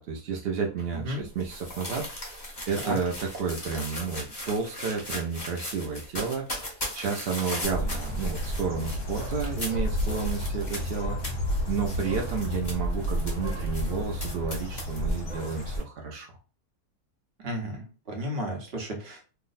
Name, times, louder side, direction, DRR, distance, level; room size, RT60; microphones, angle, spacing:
voice 1, 0.0-11.2 11.7-16.3, right 5 dB, 70° right, 0 dB, 0.5 m, -31 dB
sound 1, 0.8-15.8, left 1 dB, 20° left, 0.8 m, -39 dB
Bird, 7.6-15.8, equal, 55° left, 1.0 m, -31 dB
voice 2, 17.4-19.2, equal, 45° right, 1 dB, 0.9 m, -33 dB
2.8 x 2.1 x 3.9 m, 0.36 s
omnidirectional pair, 1.7 m